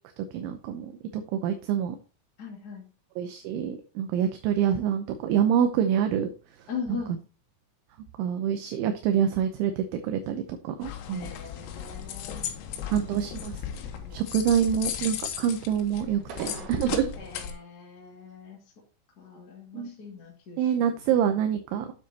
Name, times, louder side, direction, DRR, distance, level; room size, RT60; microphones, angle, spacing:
voice 1, 0.3-2.0 3.2-6.3 7.1-7.2 8.2-11.3 12.9-13.6 14.1-17.1 19.7-19.9 20.6-21.9, right 9 dB, 80° right, 6 dB, 3.0 m, -26 dB
voice 2, 2.4-2.9 6.7-7.2 11.1-13.3 13.9-14.3 14.8-14.9 16.5-16.7 17.2-18.6 19.2-21.1, left 6 dB, 45° left, 0 dB, 1.3 m, -41 dB
soundwalk-goggleworks, 10.8-17.5, left 9 dB, 80° left, 3.7 m, -36 dB
sound 1, 11.6-12.7 13.1-13.6 13.8-14.8 15.1-17.6, right 5 dB, 60° right, 2.5 m, -49 dB
9.4 x 7.3 x 2.8 m, 0.35 s
omnidirectional pair, 5.9 m